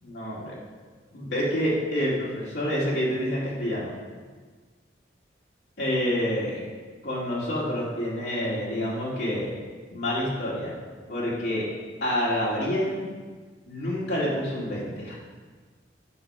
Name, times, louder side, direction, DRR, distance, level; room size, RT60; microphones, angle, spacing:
voice 1, 0.0-0.5 1.1-3.9 5.8-6.6 7.0-9.5 9.9-10.7 11.1-11.7 12.0-13.0 13.6-15.1, equal, 65° left, -7 dB, 2.5 m, -28 dB
8.6 x 6.5 x 5.6 m, 1.4 s
head